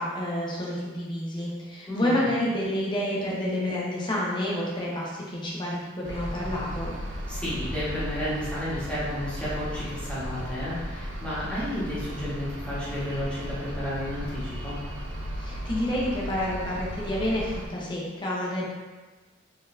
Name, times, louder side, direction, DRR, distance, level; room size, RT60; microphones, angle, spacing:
voice 1, 0.0-6.9 15.3-18.6, left 1 dB, 25° left, -5 dB, 0.9 m, -29 dB
sound 1, 6.0-17.6, equal, 70° right, 0.6 m, -36 dB
voice 2, 7.3-14.8, left 1 dB, 5° left, -11 dB, 1.4 m, -32 dB
4.0 x 3.9 x 2.6 m, 1.3 s
head